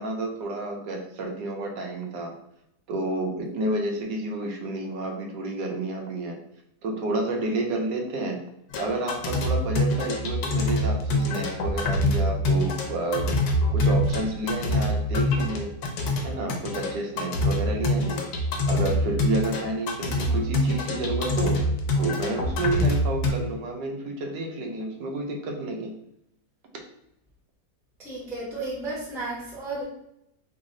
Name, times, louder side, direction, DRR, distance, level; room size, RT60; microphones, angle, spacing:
voice 1, 0.0-2.3 2.9-6.4 6.8-8.4 8.8-13.3 13.7-15.7 16.2-18.2 18.6-21.6 21.9-25.9, right 2 dB, 85° right, 1 dB, 1.3 m, -30 dB
sound 1, 8.7-23.3, left 1 dB, 75° left, 1.1 m, -25 dB
voice 2, 28.0-29.8, right 2 dB, 5° right, -5 dB, 0.5 m, -33 dB
3.3 x 2.0 x 3.6 m, 0.79 s
omnidirectional pair, 1.8 m